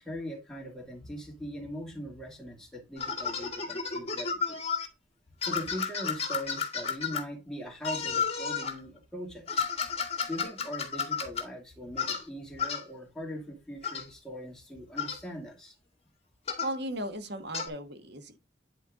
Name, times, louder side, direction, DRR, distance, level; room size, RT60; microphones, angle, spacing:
voice 1, 0.0-4.6 5.4-9.6 10.3-15.8, equal, 5° left, 2.5 m, -40 dB
sound 1, 3.0-4.9 5.4-7.2 7.8-8.8 9.5-11.4 12.0-12.2 12.6-12.8 13.8-14.0 15.0-15.2 16.5-16.8 17.5-17.7, left 6 dB, 35° left, 2.1 m, -32 dB
voice 2, 16.6-18.4, right 1 dB, 60° right, 1.3 m, -36 dB
10.0 x 4.5 x 3.6 m
head